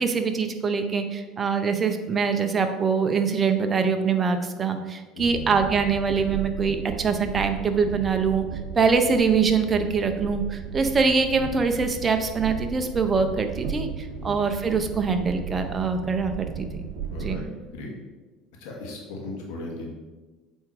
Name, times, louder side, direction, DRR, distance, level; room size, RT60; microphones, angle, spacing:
voice 1, 0.0-8.5 8.7-16.8 17.2-17.4, right 5 dB, 25° right, 6 dB, 0.7 m, -24 dB
voice 2, 5.1-5.5 14.2-14.3 17.1-17.9 18.6-19.9, left 2 dB, 85° left, -1 dB, 2.0 m, -37 dB
Train, 5.2-17.4, right 7 dB, 75° right, 0.7 m, -35 dB
8.0 x 3.7 x 4.9 m, 1.3 s
cardioid pair, 125°, 0 cm